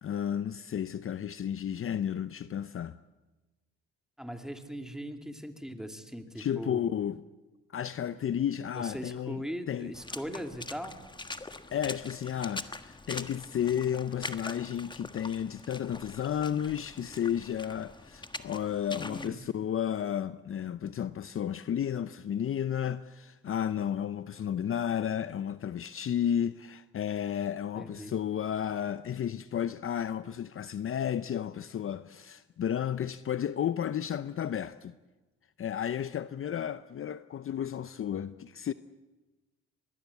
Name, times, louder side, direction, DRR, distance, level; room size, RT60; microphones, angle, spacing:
voice 1, 0.0-3.0 6.4-7.2 7.7-9.4 9.7-9.9 11.7-34.9 35.6-38.7, left 9 dB, 45° left, 0.7 m, -32 dB
voice 2, 4.2-7.0 8.8-10.9 18.9-19.4 27.8-28.2, equal, ahead, 2.6 m, -40 dB
Water / Splash splatter, 9.9-19.3, left 2 dB, 15° left, 1.4 m, -43 dB
24.0 x 19.5 x 8.4 m
cardioid pair, 80°, 30 cm